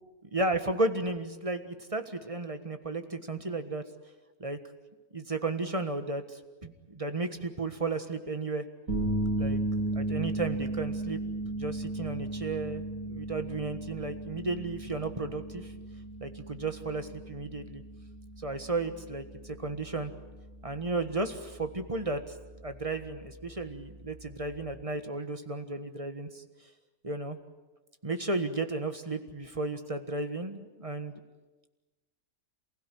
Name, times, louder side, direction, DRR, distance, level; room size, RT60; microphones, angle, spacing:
voice 1, 0.3-3.8 4.4-4.6 5.1-8.7 9.4-9.6 9.9-11.2 11.5-15.7 16.2-17.8 18.4-20.1 20.6-22.2 22.6-26.4 27.0-27.4 28.0-31.2, right 2 dB, 25° right, 8 dB, 1.5 m, -34 dB
sound 1, 8.9-24.8, right 1 dB, 65° right, 4.0 m, -36 dB
28.0 x 16.5 x 9.9 m, 1.2 s
omnidirectional pair, 1.6 m